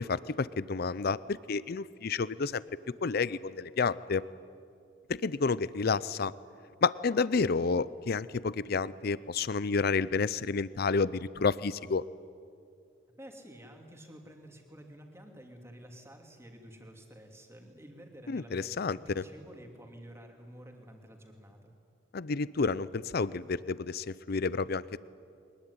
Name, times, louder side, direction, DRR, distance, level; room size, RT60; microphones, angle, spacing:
voice 1, 0.0-2.6 3.0-4.2 5.1-6.3 6.8-12.0 18.3-19.2 22.1-25.0, left 4 dB, 50° left, 18 dB, 0.5 m, -30 dB
voice 2, 13.2-21.7, equal, 15° right, 2 dB, 2.8 m, -50 dB
23.0 x 21.0 x 9.8 m, 2.4 s
head